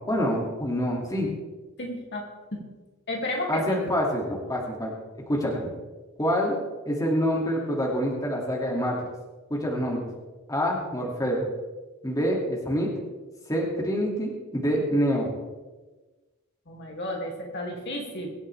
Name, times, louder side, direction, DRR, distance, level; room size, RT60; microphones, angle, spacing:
voice 1, 0.1-1.3 3.5-4.9 5.3-5.7 6.2-6.6 6.9-8.9 9.5-10.1 10.5-11.5 12.0-12.9 13.5-15.3, equal, 15° left, -2 dB, 2.5 m, -26 dB
voice 2, 1.8-2.6 3.1-3.8 16.7-18.3, left 1 dB, 50° left, -1 dB, 2.7 m, -32 dB
24.0 x 8.8 x 3.5 m, 1.2 s
head